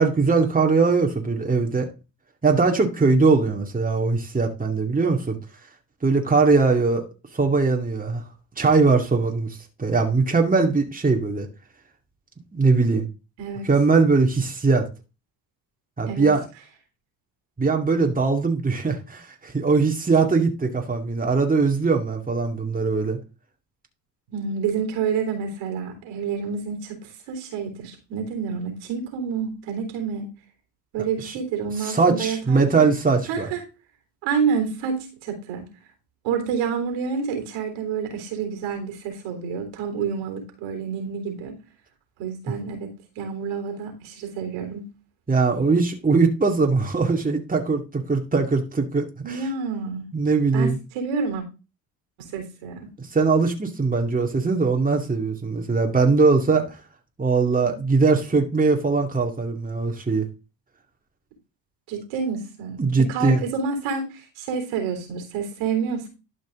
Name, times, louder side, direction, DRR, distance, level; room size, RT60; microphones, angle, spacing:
voice 1, 0.0-1.9 2.4-5.4 6.0-7.0 7.3-8.2 8.6-11.5 12.5-13.1 13.7-14.8 16.0-16.4 17.6-23.2 31.2-31.3 31.8-33.5 45.3-49.4 50.1-50.8 53.0-56.8 57.2-60.3 62.8-63.4, right 4 dB, 15° right, 2.3 m, -21 dB
voice 2, 24.3-30.3 30.9-32.9 33.3-33.6 34.2-35.7 36.2-41.6 42.2-44.8 49.2-50.0 50.5-51.4 52.2-52.9 57.6-57.8 61.9-66.1, right 6 dB, 75° right, 3.5 m, -28 dB
12.0 x 5.3 x 3.7 m
hypercardioid pair, 65°, 47 cm